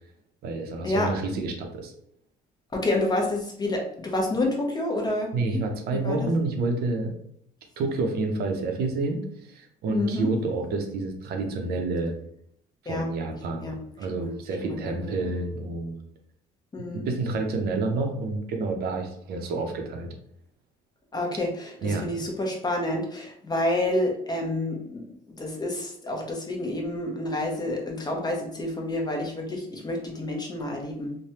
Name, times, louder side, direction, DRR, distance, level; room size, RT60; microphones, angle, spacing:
voice 1, 0.4-1.9 5.3-7.1 7.8-12.1 12.8-16.0 16.8-20.1 21.8-22.0, right 3 dB, 70° right, 3 dB, 0.6 m, -29 dB
voice 2, 2.7-5.6 5.9-6.3 9.9-10.3 12.9-13.1 13.6-13.8 14.1-14.3 14.6-15.3 16.7-17.1 21.1-31.2, left 1 dB, 25° left, 0 dB, 0.7 m, -29 dB
3.2 x 2.1 x 2.8 m, 0.68 s
cardioid pair, 110°, 17 cm